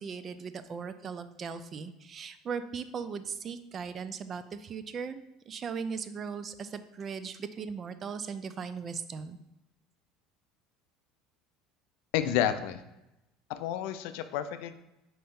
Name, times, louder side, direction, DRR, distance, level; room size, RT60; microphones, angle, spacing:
voice 1, 0.0-9.4, right 6 dB, 35° right, 11 dB, 0.3 m, -38 dB
voice 2, 12.1-12.8 13.5-14.7, left 10 dB, 75° left, 10 dB, 0.3 m, -30 dB
5.2 x 2.8 x 3.6 m, 0.91 s
supercardioid pair, 110°, 0 cm